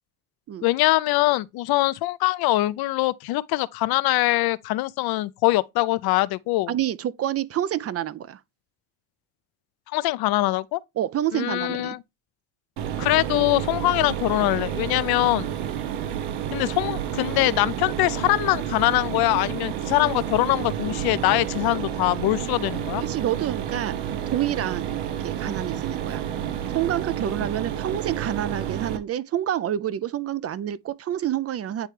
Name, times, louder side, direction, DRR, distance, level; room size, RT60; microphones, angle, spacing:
voice 1, 0.6-6.7 9.9-10.8 11.3-12.0 13.0-15.5 16.5-23.0, left 18 dB, 70° left, 0.5 m, -23 dB
voice 2, 6.7-8.4 11.0-12.0 23.0-26.2 26.7-31.9, right 11 dB, 40° right, 0.4 m, -28 dB
Mechanisms, 12.8-29.0, right 10 dB, 85° right, 0.8 m, -30 dB
9.2 x 3.2 x 3.2 m
supercardioid pair, 65°, 39 cm